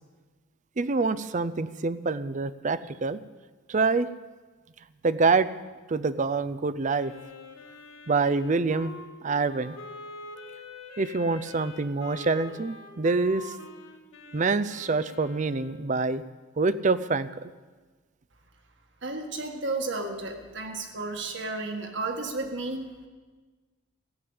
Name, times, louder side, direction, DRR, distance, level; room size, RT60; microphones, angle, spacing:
voice 1, 0.8-3.2 3.7-4.1 5.0-5.5 5.9-7.1 8.1-8.9 9.2-9.8 11.0-13.5 14.3-16.2 16.6-17.5, right 4 dB, 35° right, 14 dB, 0.5 m, -26 dB
Wind instrument woodwind instrument, 7.0-15.9, left 3 dB, 75° left, 1.9 m, -44 dB
voice 2, 19.0-22.9, right 3 dB, 55° right, 4 dB, 1.8 m, -33 dB
16.0 x 8.5 x 8.7 m, 1.4 s
head